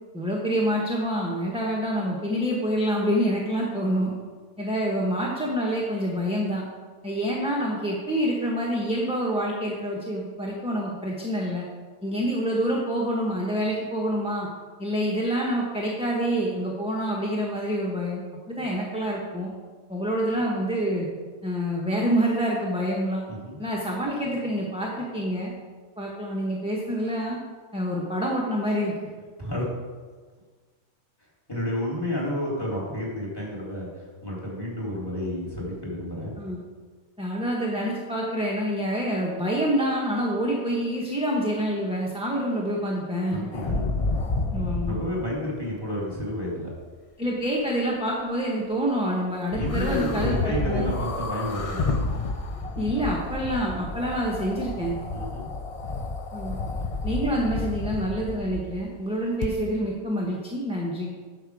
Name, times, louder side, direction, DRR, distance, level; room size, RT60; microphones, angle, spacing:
voice 1, 0.1-4.2 4.6-6.6 7.0-11.7 12.0-14.5 14.8-19.5 19.9-21.1 21.4-23.2 23.6-25.5 26.0-27.4 27.7-28.9 36.4-36.6 37.2-43.5 44.5-45.0 47.2-50.9 52.8-54.9 56.3-56.6 57.0-61.1, equal, 5° right, -3 dB, 1.0 m, -27 dB
voice 2, 23.3-23.6 29.4-29.6 31.5-36.4 43.3-43.9 44.8-46.7 49.5-52.0 55.1-55.5, equal, 15° left, -5 dB, 3.0 m, -31 dB
sound 1, 43.5-45.1 49.5-58.8 59.4-59.5, left 3 dB, 45° left, 0.4 m, -30 dB
10.0 x 6.8 x 4.8 m, 1.5 s
omnidirectional pair, 1.4 m